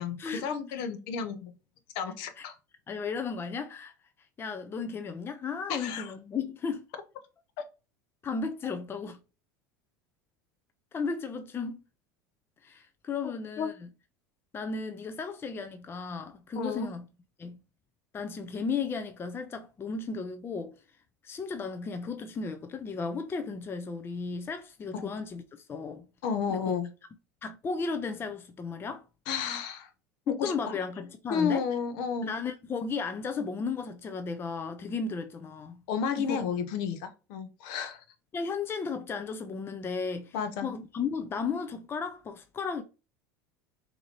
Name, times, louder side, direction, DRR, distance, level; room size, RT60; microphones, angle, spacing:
voice 1, 0.0-1.5 1.9-2.6 5.7-6.1 13.6-13.7 16.6-16.9 24.9-25.1 26.2-26.9 29.3-29.9 30.3-30.7 31.3-32.3 35.9-38.0 40.3-40.7, left 6 dB, 60° left, 0.7 m, -32 dB
voice 2, 2.9-3.9 4.4-6.8 8.2-9.2 10.9-11.8 12.6-13.9 14.5-17.1 17.4-17.6 18.1-20.7 21.2-26.0 26.5-26.8 27.4-29.0 30.3-31.6 32.2-35.8 36.2-36.4 38.3-42.8, left 5 dB, 25° left, 0.4 m, -34 dB
4.1 x 2.7 x 2.8 m
hypercardioid pair, 80°, 9 cm